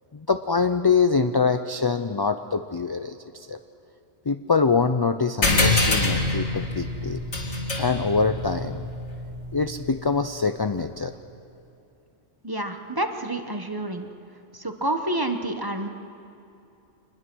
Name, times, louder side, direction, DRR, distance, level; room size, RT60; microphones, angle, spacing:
voice 1, 0.1-3.2 3.5-3.6 4.3-7.2 7.8-8.9 9.5-11.1, left 4 dB, 35° left, 9 dB, 0.3 m, -24 dB
sound 1, 5.4-10.3, left 2 dB, 75° left, 2.9 m, -26 dB
voice 2, 12.4-14.1 14.5-15.9, right 1 dB, 20° right, 5 dB, 1.2 m, -28 dB
25.5 x 20.5 x 6.2 m, 2.7 s
omnidirectional pair, 1.2 m